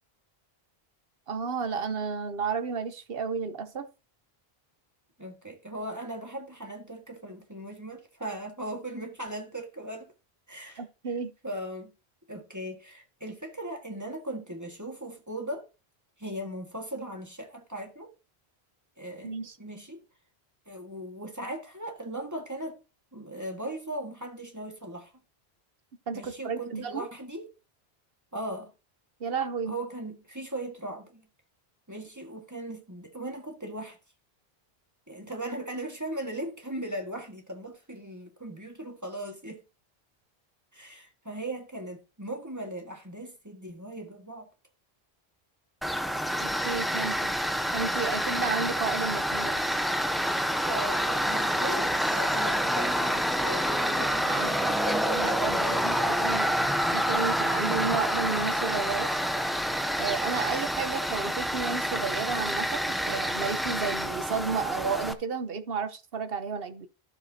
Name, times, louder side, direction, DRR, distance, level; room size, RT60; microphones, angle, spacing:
voice 1, 1.3-3.9 10.8-11.3 19.2-19.5 26.1-27.1 29.2-29.7 46.4-47.3 47.7-49.6 54.3-54.7 55.1-59.1 60.0-66.9, right 5 dB, 65° right, 1.2 m, -32 dB
voice 2, 5.2-10.1 10.5-10.8 11.4-11.9 12.3-15.7 16.2-18.1 19.0-20.0 20.7-22.8 23.1-25.1 26.1-27.5 28.3-28.7 29.7-31.3 31.9-34.0 35.1-39.6 40.7-44.5 46.1-46.3 50.7-56.1, right 1 dB, 15° right, 1.8 m, -38 dB
Tools, 45.8-65.1, equal, ahead, 0.6 m, -28 dB
13.0 x 7.3 x 2.8 m
omnidirectional pair, 1.1 m